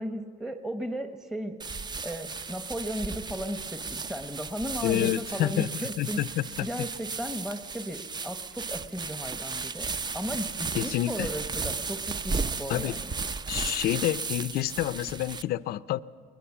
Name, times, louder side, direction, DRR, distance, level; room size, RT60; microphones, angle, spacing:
voice 1, 0.0-6.2 6.6-13.0, equal, 5° right, 7 dB, 0.9 m, -36 dB
sound 1, 1.6-15.4, right 4 dB, 25° right, 0.5 m, -35 dB
voice 2, 4.8-6.7 10.8-11.3 12.7-13.0 13.5-16.0, left 13 dB, 65° left, 17 dB, 0.5 m, -28 dB
21.0 x 20.0 x 7.2 m, 2.1 s
cardioid pair, 110°, 17 cm